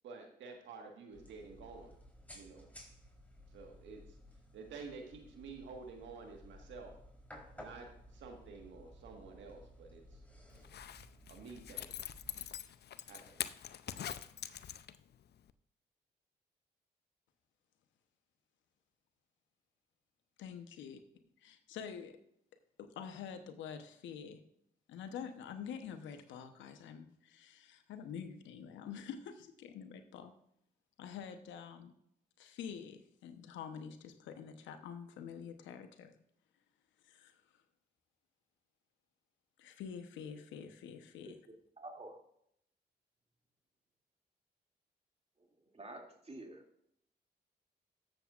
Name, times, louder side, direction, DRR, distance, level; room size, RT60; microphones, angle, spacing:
voice 1, 0.0-1.9 2.3-2.7 3.5-4.0 4.5-6.9 7.5-10.2 11.3-11.9 13.1-13.4, right 4 dB, 80° right, 3 dB, 1.6 m, -50 dB
sound 1, 1.1-12.6, left 1 dB, 10° left, 3.7 m, -56 dB
Zipper (clothing), 10.6-15.2 15.5-15.6, left 10 dB, 60° left, 0.6 m, -44 dB
voice 2, 20.4-21.0 21.4-22.2 22.8-24.4 24.9-30.3 31.0-31.9 32.4-36.2 37.0-37.4 39.6-41.4, left 7 dB, 85° left, 8 dB, 1.0 m, -47 dB
voice 3, 41.8-42.2 45.7-46.6, right 2 dB, 35° right, 2 dB, 2.5 m, -48 dB
13.5 x 7.6 x 2.5 m, 0.72 s
supercardioid pair, 50°, 19 cm